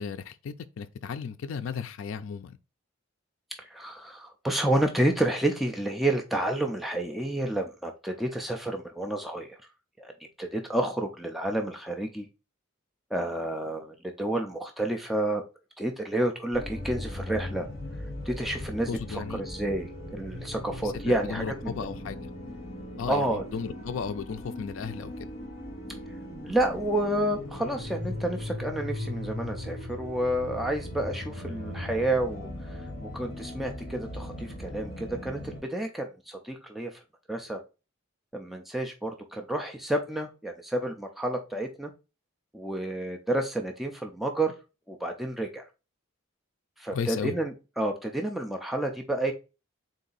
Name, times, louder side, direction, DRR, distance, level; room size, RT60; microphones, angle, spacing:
voice 1, 0.0-2.6 18.9-19.4 20.8-20.9 21.2-22.3 23.0-25.1 46.9-47.3, left 6 dB, 70° left, 0.4 m, -35 dB
voice 2, 3.7-9.6 10.0-10.1 10.4-12.3 13.1-15.4 15.8-17.7 18.3-21.8 23.1-23.4 26.4-37.0 37.3-37.6 38.3-41.9 42.5-44.5 44.9-45.6 46.8-49.3, right 1 dB, ahead, 0.4 m, -30 dB
sound 1, 16.5-35.6, left 1 dB, 35° left, 1.4 m, -38 dB
3.8 x 2.7 x 3.9 m
head